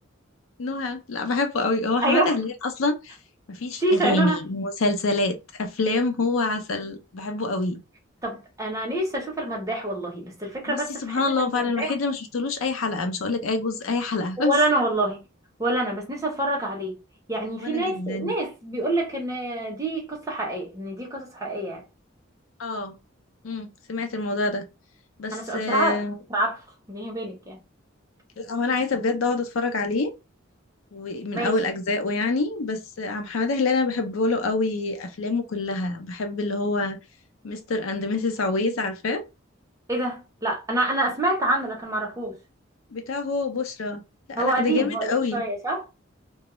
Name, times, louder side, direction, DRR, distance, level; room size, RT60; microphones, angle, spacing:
voice 1, 0.6-3.2 3.5-7.8 10.7-14.6 17.6-18.3 22.6-22.9 23.4-24.6 25.2-26.1 28.4-30.1 30.9-37.0 37.4-39.2 42.9-44.0 44.3-45.4, left 3 dB, 85° left, 0.5 m, -26 dB
voice 2, 2.0-2.4 3.8-4.4 8.2-12.0 14.4-15.2 15.6-17.0 17.3-21.8 25.3-26.0 26.3-26.6 26.9-27.6 31.3-31.5 39.9-42.4 44.4-45.9, right 1 dB, 15° right, 0.7 m, -26 dB
2.3 x 2.0 x 2.9 m
head